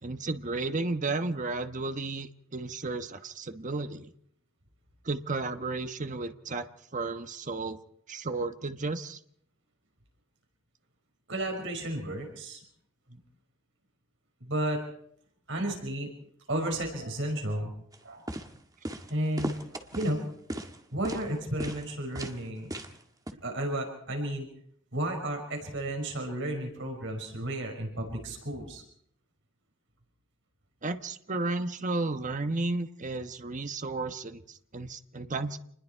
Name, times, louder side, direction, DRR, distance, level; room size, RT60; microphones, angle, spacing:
voice 1, 0.0-4.1 5.0-7.8 8.1-9.2 30.8-35.6, right 3 dB, 40° right, 8 dB, 1.2 m, -33 dB
voice 2, 11.3-12.6 13.1-13.2 14.4-14.8 15.5-16.1 16.5-17.7 18.0-18.2 19.1-20.2 20.9-22.7 23.4-24.5 24.9-28.8, right 1 dB, 70° right, 3 dB, 5.8 m, -33 dB
sound 1, 17.9-18.0 18.3-18.5 18.8-19.1 19.4-20.1 20.5-20.8 21.0-21.2 21.6-21.8 22.1-22.4 22.7-23.0 23.3-23.4, right 1 dB, 20° right, 1.8 m, -36 dB
28.0 x 21.0 x 4.6 m, 0.67 s
head